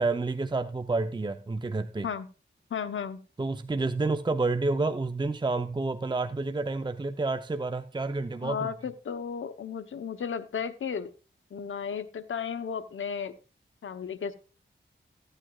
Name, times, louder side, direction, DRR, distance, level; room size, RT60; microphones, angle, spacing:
voice 1, 0.0-2.1 3.4-8.7, right 3 dB, 25° right, 0.6 m, -29 dB
voice 2, 2.7-3.2 8.4-11.1 11.5-13.3 13.8-14.4, left 7 dB, 85° left, 0.8 m, -34 dB
15.0 x 9.0 x 2.3 m
cardioid pair, 55°, 20 cm